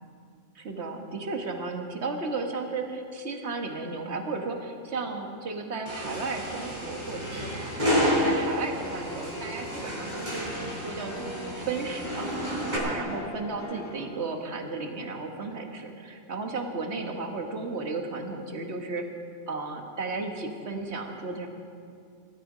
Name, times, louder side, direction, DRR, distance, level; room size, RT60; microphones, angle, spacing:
voice 1, 0.5-7.5 7.8-10.5 10.8-12.3 12.7-19.1 19.5-21.5, right 3 dB, 55° right, 3 dB, 1.7 m, -34 dB
sound 1, 5.9-12.8, equal, 35° right, 3.7 m, -30 dB
sound 2, 8.7-14.0, left 1 dB, 60° left, 2.6 m, -42 dB
19.0 x 13.0 x 5.0 m, 2.3 s
omnidirectional pair, 1.4 m